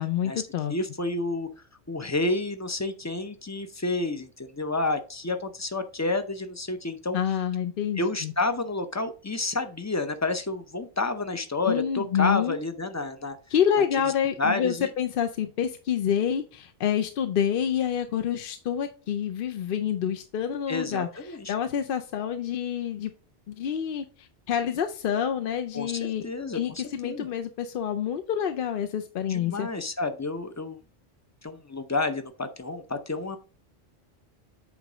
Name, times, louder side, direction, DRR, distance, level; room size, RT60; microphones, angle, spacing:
voice 1, 0.0-0.7 7.1-8.3 11.7-12.6 13.5-23.1 23.5-26.3 26.5-29.7, left 9 dB, 60° left, 7 dB, 0.7 m, -28 dB
voice 2, 0.7-1.5 1.9-7.2 8.0-13.4 14.4-14.9 20.7-21.5 25.7-27.3 29.3-30.8 31.4-33.4, left 2 dB, 20° left, 9 dB, 0.4 m, -30 dB
8.1 x 3.2 x 4.9 m, 0.37 s
omnidirectional pair, 1.1 m